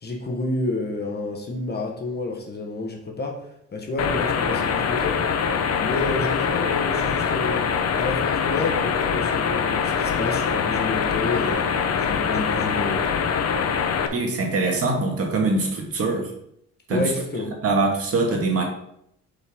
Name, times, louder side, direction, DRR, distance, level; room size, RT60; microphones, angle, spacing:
voice 1, 0.0-3.4 3.7-5.2 5.8-7.7 7.9-13.1 16.9-17.5, left 3 dB, 35° left, 2 dB, 1.3 m, -29 dB
sound 1, 4.0-14.1, left 6 dB, 55° left, 0.8 m, -23 dB
voice 2, 14.1-16.3 16.9-17.1 17.6-18.6, right 3 dB, 50° right, 0 dB, 1.8 m, -23 dB
8.0 x 5.4 x 3.6 m, 0.75 s
cardioid pair, 145°, 30 cm